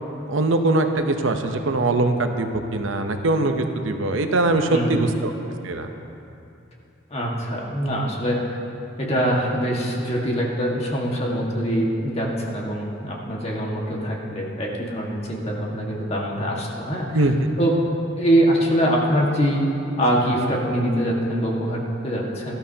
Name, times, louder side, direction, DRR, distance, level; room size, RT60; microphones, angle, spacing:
voice 1, 0.3-5.3 5.6-5.9 17.1-17.3, right 2 dB, 70° right, 5 dB, 0.8 m, -22 dB
voice 2, 7.1-8.6 9.0-17.1 17.6-17.8 18.2-19.6 20.0-22.6, equal, 30° left, -3 dB, 1.7 m, -23 dB
18.0 x 13.0 x 2.9 m, 2.7 s
head